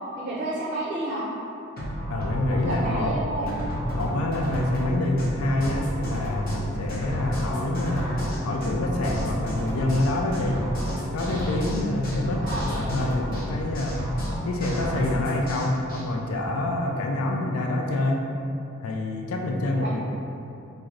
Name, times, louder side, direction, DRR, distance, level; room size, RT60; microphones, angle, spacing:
voice 1, 0.1-1.2 2.7-3.5 12.4-12.7 19.8-19.9, right 1 dB, 40° right, -6 dB, 0.5 m, -30 dB
sound 1, 1.8-16.0, equal, 45° left, 0.9 m, -30 dB
voice 2, 2.1-3.2 3.9-8.1 8.4-10.6 11.1-14.0 14.4-18.3 18.8-20.0, left 2 dB, 90° left, 1 dB, 0.4 m, -26 dB
3.8 x 2.6 x 3.1 m, 2.7 s
head